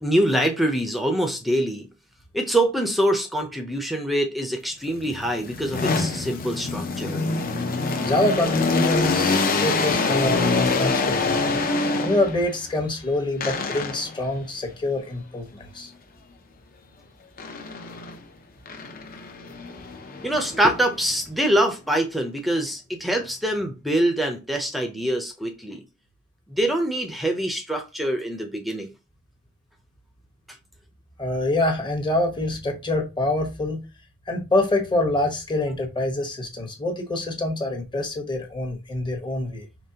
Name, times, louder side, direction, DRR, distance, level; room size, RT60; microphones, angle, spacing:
voice 1, 0.0-1.8 2.3-7.2 20.1-25.8 26.5-28.9, right 1 dB, ahead, 0.6 m, -24 dB
sound 1, 4.9-12.5 13.4-14.2 17.4-18.2 18.7-21.0, left 3 dB, 40° left, 0.7 m, -25 dB
voice 2, 8.0-11.6 12.0-15.9 31.2-33.8 34.3-39.7, left 2 dB, 20° left, 1.1 m, -25 dB
5.2 x 3.3 x 2.8 m
head